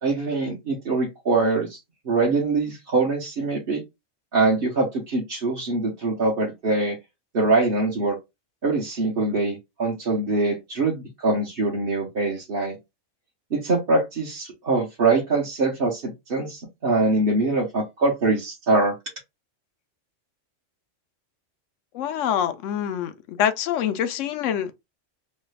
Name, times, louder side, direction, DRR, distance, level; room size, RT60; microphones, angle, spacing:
voice 1, 0.0-1.8 2.0-3.8 4.3-7.0 7.3-8.2 8.6-12.8 13.5-18.9, right 3 dB, 50° right, 1.1 m, -23 dB
voice 2, 21.9-24.7, left 9 dB, 85° left, 0.9 m, -25 dB
3.2 x 2.3 x 3.2 m
omnidirectional pair, 1.3 m